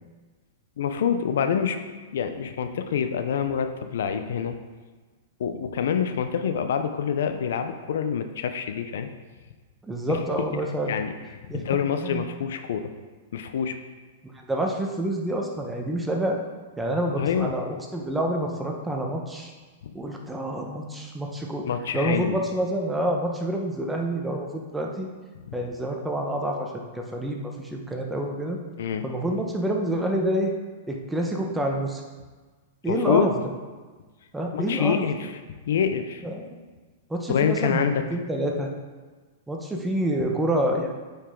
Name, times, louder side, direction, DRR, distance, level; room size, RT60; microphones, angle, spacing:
voice 1, 0.8-1.8 2.1-4.5 5.4-9.1 10.9-11.1 11.5-12.8 13.3-13.7 17.2-17.5 21.6-22.4 25.5-25.6 28.8-29.0 32.9-33.3 34.5-35.3 35.7-36.2 37.3-38.0, left 7 dB, 70° left, 7 dB, 0.7 m, -26 dB
voice 2, 9.8-11.0 11.5-12.2 14.5-16.4 16.8-19.5 19.9-21.7 21.9-25.1 25.5-28.6 29.0-30.5 30.9-32.0 32.8-33.3 34.3-35.0 36.2-36.6 37.1-37.9 38.1-38.7 39.5-40.9, right 1 dB, 10° right, 0 dB, 1.1 m, -27 dB
8.3 x 5.5 x 3.8 m, 1.4 s
hypercardioid pair, 120°, 0 cm